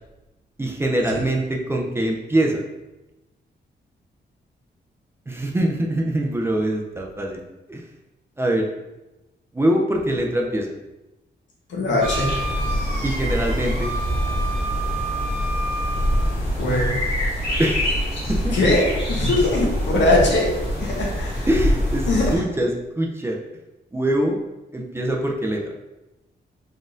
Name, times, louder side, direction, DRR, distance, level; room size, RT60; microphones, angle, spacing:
voice 1, 0.6-2.6 5.3-7.4 7.7-7.8 8.4-8.7 9.5-10.7 13.0-13.9 17.6-18.0 18.3-18.8 21.5-23.4 23.9-24.4 24.7-25.6, right 1 dB, 15° right, 0 dB, 0.4 m, -23 dB
voice 2, 11.7-12.3 16.6-17.0 18.5-20.5 20.8-21.5 22.1-22.3, left 2 dB, 80° left, -2 dB, 1.1 m, -21 dB
sound 1, 12.0-22.4, equal, 30° left, 1.4 m, -25 dB
Wind instrument woodwind instrument, 12.0-16.4, right 2 dB, 50° right, 0.7 m, -31 dB
4.1 x 3.7 x 2.5 m, 1.0 s
wide cardioid pair, 135°, 19 cm